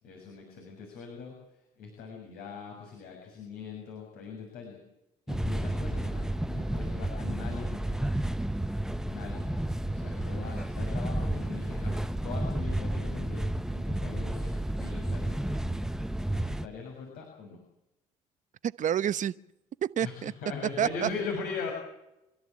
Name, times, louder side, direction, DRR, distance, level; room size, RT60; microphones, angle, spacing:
voice 1, 0.0-1.4 1.8-4.8 5.3-8.1 9.1-9.5 9.9-13.4 13.7-15.5 16.3-17.6 20.0-21.7, left 5 dB, 75° left, 6.8 m, -41 dB
sound 1, 5.3-16.7, right 1 dB, 5° right, 1.1 m, -31 dB
voice 2, 18.6-19.3 20.0-20.3 20.8-21.1, right 9 dB, 55° right, 1.0 m, -28 dB
27.5 x 13.5 x 8.7 m
hypercardioid pair, 60°, 16 cm